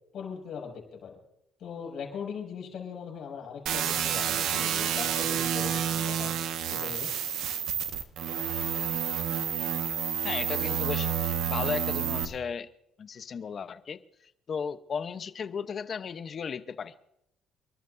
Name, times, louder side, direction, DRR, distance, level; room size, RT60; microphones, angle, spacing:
voice 1, 0.1-1.2 1.6-6.3 6.7-7.1, left 7 dB, 60° left, 1 dB, 6.5 m, -40 dB
sound 1, 3.7-12.3, right 8 dB, 80° right, 1.5 m, -29 dB
voice 2, 10.2-12.7 13.0-16.9, left 6 dB, 45° left, 13 dB, 0.9 m, -35 dB
29.0 x 12.5 x 2.7 m, 0.79 s
cardioid pair, 110°, 0 cm